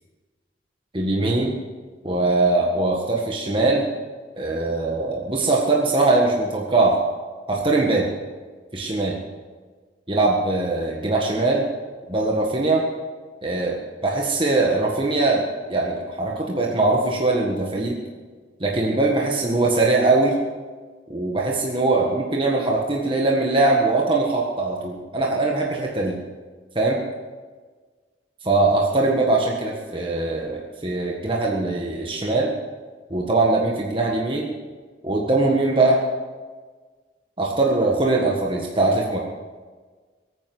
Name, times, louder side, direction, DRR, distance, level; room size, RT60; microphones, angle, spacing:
voice 1, 0.9-1.5 2.0-3.9 4.4-7.0 7.5-8.1 8.7-9.2 10.1-11.7 12.1-12.8 13.4-13.8 14.0-18.0 18.6-20.4 21.1-26.2 26.7-27.0 28.4-32.5 33.1-34.5 35.0-36.0 37.4-39.2, right 2 dB, 30° right, -2 dB, 1.7 m, -21 dB
22.0 x 9.5 x 6.1 m, 1.4 s
head